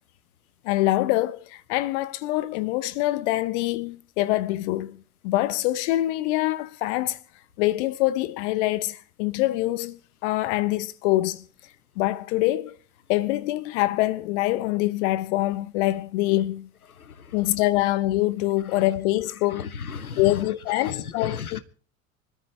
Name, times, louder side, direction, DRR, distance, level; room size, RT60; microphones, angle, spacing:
voice 1, 0.6-5.0 5.2-7.2 7.6-11.4 12.0-12.8 13.1-16.7 17.3-19.7 20.2-21.6, left 16 dB, 55° left, 0.9 m, -25 dB
voice 2, 17.0-17.4 19.5-20.5 20.8-21.6, left 6 dB, 85° left, 1.1 m, -35 dB
25.0 x 13.5 x 3.3 m
figure-of-eight pair, 75°, 42 cm